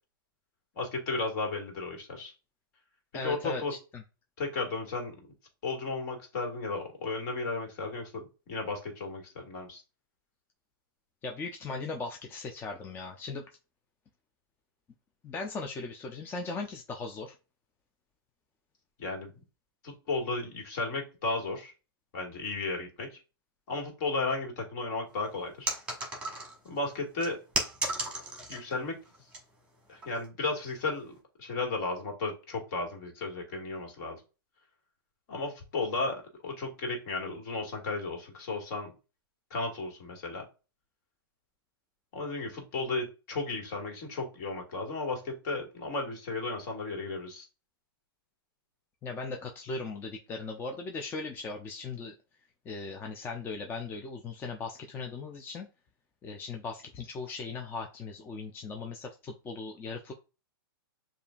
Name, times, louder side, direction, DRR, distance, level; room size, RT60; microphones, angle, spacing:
voice 1, 0.8-2.3 3.2-3.7 4.4-5.1 5.6-8.2 8.5-9.8 19.0-19.3 19.8-21.7 22.1-23.2 23.7-25.7 26.6-27.4 28.5-29.0 29.9-34.2 35.3-36.2 36.4-38.9 39.5-40.4 42.1-47.5, left 3 dB, 50° left, 1 dB, 1.9 m, -34 dB
voice 2, 3.1-4.0 11.2-13.4 15.2-17.3 49.0-52.1 52.6-55.7 56.2-60.1, left 3 dB, 15° left, 3 dB, 0.5 m, -38 dB
sound 1, 25.7-26.7 27.2-28.7 29.1-29.4 30.0-30.3, right 2 dB, 10° right, 1.5 m, -34 dB
6.7 x 2.6 x 2.4 m, 0.31 s
hypercardioid pair, 130°, 13 cm